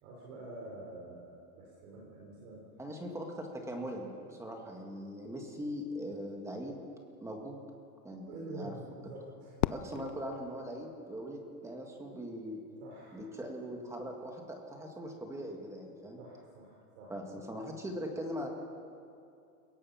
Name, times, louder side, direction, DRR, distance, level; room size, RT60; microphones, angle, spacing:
voice 1, 0.0-2.6 8.3-9.6 10.1-10.2 12.8-13.2 16.2-17.4, right 2 dB, 50° right, -2 dB, 4.9 m, -47 dB
voice 2, 2.8-6.8 7.2-7.6 8.0-8.7 9.7-12.6 13.1-16.2 17.1-18.5, equal, 5° right, 2 dB, 2.0 m, -41 dB
Fireworks, 9.6-11.8, left 15 dB, 45° left, 0.5 m, -38 dB
29.5 x 17.0 x 5.8 m, 2.5 s
supercardioid pair, 160°, 48 cm